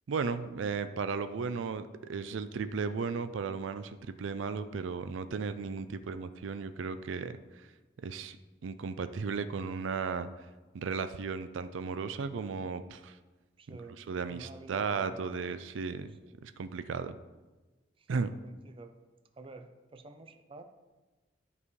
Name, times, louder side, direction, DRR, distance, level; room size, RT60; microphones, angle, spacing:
voice 1, 0.1-7.7 8.0-8.4 8.6-10.3 10.7-13.2 13.7-13.8 14.1-16.1 16.4-17.2 18.1-18.3, right 5 dB, 85° right, 11 dB, 0.4 m, -35 dB
voice 2, 13.6-15.3 16.0-16.4 18.0-18.1 18.4-19.0 19.3-20.6, right 3 dB, 30° right, 8 dB, 0.5 m, -50 dB
12.0 x 5.4 x 3.2 m, 1.2 s
head